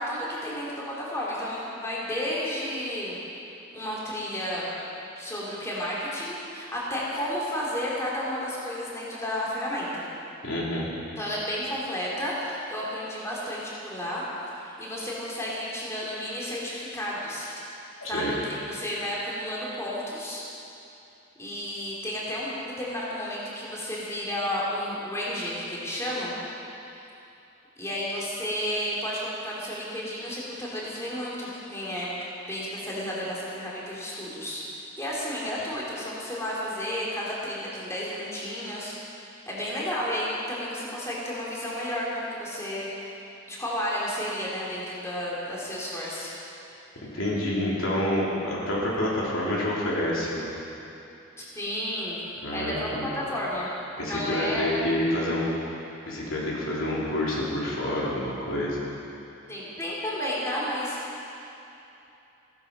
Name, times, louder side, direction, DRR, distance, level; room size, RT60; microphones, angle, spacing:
voice 1, 0.0-3.2 3.7-4.7 5.2-10.1 11.2-17.5 18.1-20.4 21.4-26.3 27.8-32.1 32.5-34.6 35.0-38.9 39.5-43.2 43.5-46.3 51.4-52.2 52.5-53.7 54.0-54.8 59.5-61.0, equal, 15° left, -6 dB, 3.0 m, -32 dB
voice 2, 10.4-10.9 18.0-18.3 47.0-50.5 52.4-53.1 54.0-55.4 56.1-58.8, left 1 dB, 90° left, -5 dB, 3.4 m, -28 dB
16.0 x 13.5 x 5.3 m, 2.8 s
head